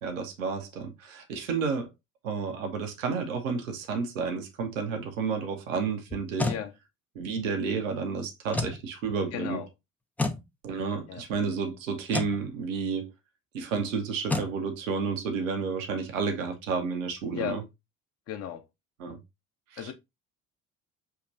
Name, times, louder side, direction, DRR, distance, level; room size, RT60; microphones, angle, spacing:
voice 1, 0.0-1.9 2.2-6.5 7.1-9.6 10.6-13.1 13.5-17.6 19.0-19.2 19.7-19.9, right 5 dB, 70° right, 0.9 m, -31 dB
sound 1, 6.1-6.6 8.5-8.8 10.2-10.4 12.1-12.4 14.3-14.5, left 2 dB, 5° left, 0.4 m, -29 dB
voice 2, 9.3-9.7 11.1-11.2 17.3-17.6 18.3-18.6 19.8-19.9, left 9 dB, 40° left, 0.7 m, -34 dB
5.9 x 2.9 x 2.6 m
figure-of-eight pair, 55°, 40 cm